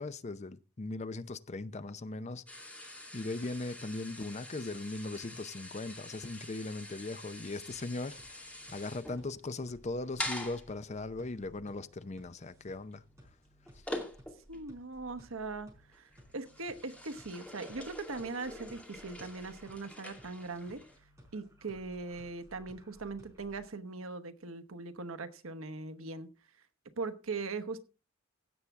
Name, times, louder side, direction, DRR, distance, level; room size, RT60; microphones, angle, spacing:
voice 1, 0.0-2.4 3.1-13.0, left 2 dB, 35° left, 0.5 m, -39 dB
sound 1, 2.5-14.7 15.0-15.4 15.9-21.0, left 1 dB, 5° left, 2.3 m, -46 dB
sound 2, 7.7-23.6, equal, 15° right, 4.9 m, -59 dB
voice 2, 14.5-20.8 21.3-26.3 27.0-27.8, right 3 dB, 80° right, 1.1 m, -40 dB
16.0 x 7.2 x 3.5 m
head